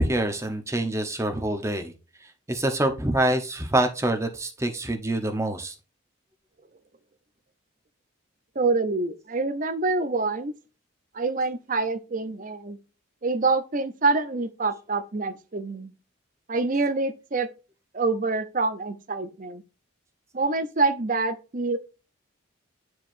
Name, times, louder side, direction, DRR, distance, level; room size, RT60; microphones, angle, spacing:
voice 1, 0.0-1.9 2.5-5.7, right 1 dB, 15° right, 0.9 m, -25 dB
voice 2, 8.6-10.5 11.1-12.8 13.2-15.9 16.5-17.5 17.9-19.6 20.3-21.8, right 3 dB, 40° right, 0.7 m, -26 dB
9.4 x 4.7 x 2.6 m
head